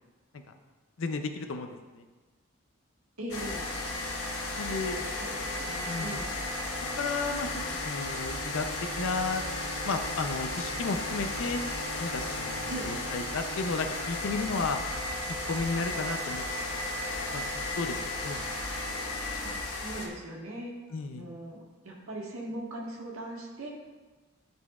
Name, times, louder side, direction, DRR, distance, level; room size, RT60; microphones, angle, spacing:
voice 1, 1.0-2.0 4.6-5.0 5.9-6.2 7.0-8.7 9.0-9.4 9.8-11.6 12.0-14.8 15.5-16.7 17.0-18.0 18.2-18.4 20.9-21.3, left 4 dB, 70° left, 6 dB, 0.5 m, -33 dB
voice 2, 3.2-3.7 4.7-6.3 12.7-12.9 19.4-20.7 21.1-23.7, right 1 dB, 75° right, -3 dB, 1.6 m, -40 dB
sound 1, 3.3-20.1, left 2 dB, 85° left, 1.0 m, -34 dB
11.0 x 4.3 x 2.4 m, 1.3 s
head